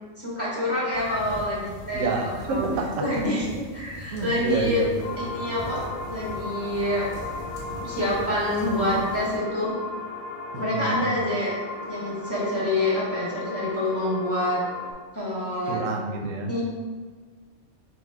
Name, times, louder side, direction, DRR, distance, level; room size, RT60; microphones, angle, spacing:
voice 1, 0.2-2.7 3.0-4.8 5.2-5.8 6.1-7.1 7.8-9.7 10.5-11.5 11.8-14.6 15.1-15.8 16.5-16.6, left 1 dB, 10° left, -8 dB, 1.2 m, -27 dB
sound 1, 0.9-9.4, left 1 dB, 40° left, 1.2 m, -41 dB
voice 2, 1.9-3.0 4.1-5.4 10.5-11.2 15.7-16.5, right 3 dB, 90° right, 2 dB, 1.0 m, -28 dB
sound 2, 5.0-14.9, left 2 dB, 85° left, 1.0 m, -36 dB
4.1 x 2.3 x 4.5 m, 1.5 s
omnidirectional pair, 1.3 m